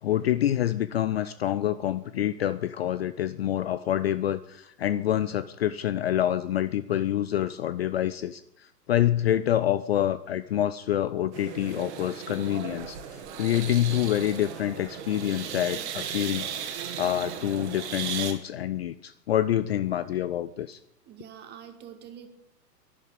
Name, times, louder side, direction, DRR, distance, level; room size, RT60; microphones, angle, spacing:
voice 1, 0.0-20.8, left 12 dB, 40° left, 15 dB, 0.6 m, -27 dB
sound 1, 11.3-18.3, right 8 dB, 45° right, 2.3 m, -36 dB
voice 2, 21.1-22.3, right 9 dB, 20° right, 7 dB, 1.9 m, -45 dB
12.0 x 11.0 x 8.8 m, 0.76 s
figure-of-eight pair, 105°, 49 cm